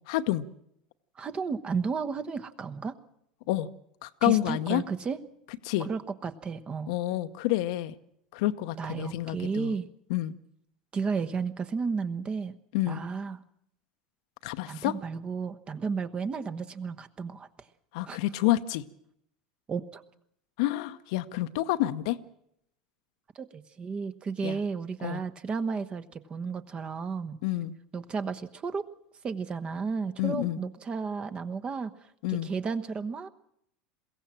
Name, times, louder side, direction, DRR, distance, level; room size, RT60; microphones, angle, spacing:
voice 1, 0.1-0.4 3.5-3.7 4.0-4.8 5.6-5.9 6.9-7.9 8.3-9.7 10.1-10.3 12.7-13.0 14.4-14.9 17.9-18.8 20.6-22.2 24.4-24.6 25.0-25.2 27.4-27.7 30.2-30.6 32.2-32.5, left 15 dB, 65° left, 11 dB, 0.9 m, -28 dB
voice 2, 1.2-3.0 4.2-5.2 5.8-6.9 8.8-9.9 10.9-12.5 12.9-13.4 14.7-17.5 18.0-18.2 19.7-20.0 23.3-27.4 27.9-28.8 29.2-31.9 32.3-33.3, right 5 dB, 30° right, 10 dB, 1.2 m, -33 dB
22.0 x 16.0 x 7.5 m, 0.73 s
hypercardioid pair, 85°, 4 cm